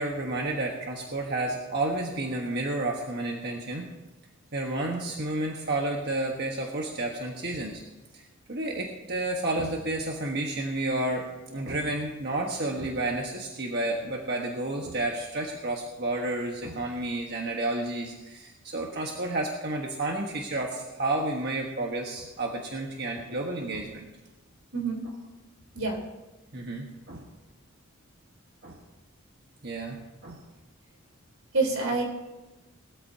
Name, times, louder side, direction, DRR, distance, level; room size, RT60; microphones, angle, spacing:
voice 1, 0.0-3.9 4.5-7.8 8.1-8.2 8.5-24.1 26.5-27.3 28.6-28.8 29.6-30.4, right 2 dB, 50° right, 0 dB, 1.4 m, -31 dB
voice 2, 31.5-32.0, right 3 dB, 90° right, 0 dB, 3.9 m, -26 dB
19.5 x 13.0 x 2.8 m, 1.1 s
head